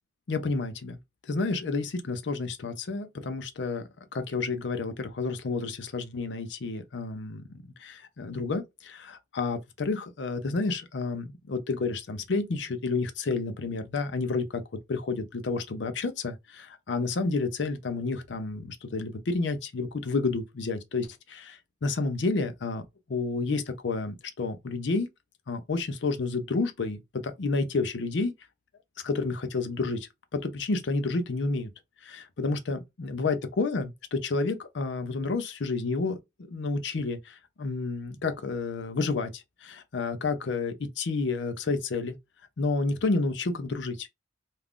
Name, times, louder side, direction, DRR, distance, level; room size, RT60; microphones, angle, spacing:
voice 1, 0.3-1.0 1.2-3.8 4.1-7.4 7.8-14.6 14.9-22.8 23.1-25.1 25.5-28.3 29.0-31.7 32.0-36.2 36.5-42.2 42.6-44.1, left 3 dB, 70° left, 0.5 m, -30 dB
2.4 x 2.3 x 3.5 m
head